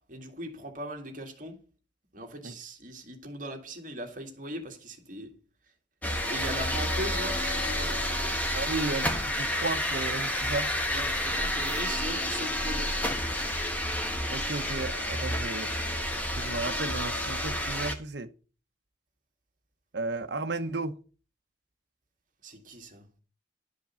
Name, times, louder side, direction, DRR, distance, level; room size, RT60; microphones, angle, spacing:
voice 1, 0.1-1.6 2.1-5.4 6.3-8.4 10.9-13.0 22.4-23.1, equal, 45° right, 1.9 m, -39 dB
sound 1, 6.0-17.9, left 1 dB, 10° left, 1.2 m, -30 dB
voice 2, 8.5-10.7 14.3-15.7 16.3-18.3 19.9-21.0, right 3 dB, 65° right, 0.9 m, -34 dB
11.5 x 5.2 x 6.9 m
head